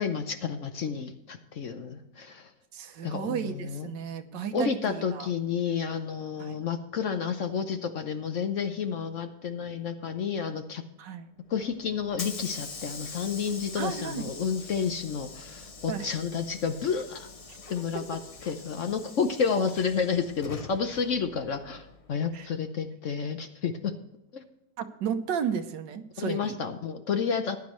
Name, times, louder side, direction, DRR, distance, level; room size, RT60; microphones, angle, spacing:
voice 1, 0.0-2.5 3.0-3.9 4.5-10.8 11.5-17.3 17.7-18.2 18.5-23.9 24.3-24.4 26.2-27.6, left 6 dB, 60° left, 8 dB, 0.9 m, -30 dB
voice 2, 2.7-5.3 6.4-6.6 11.0-11.3 13.8-14.3 15.9-16.1 17.5-17.6 22.3-22.5 24.8-26.5, right 7 dB, 85° right, 8 dB, 1.6 m, -33 dB
Hiss / Sliding door, 11.5-22.3, left 4 dB, 40° left, 0.4 m, -44 dB
15.0 x 10.5 x 3.1 m, 0.88 s
omnidirectional pair, 1.9 m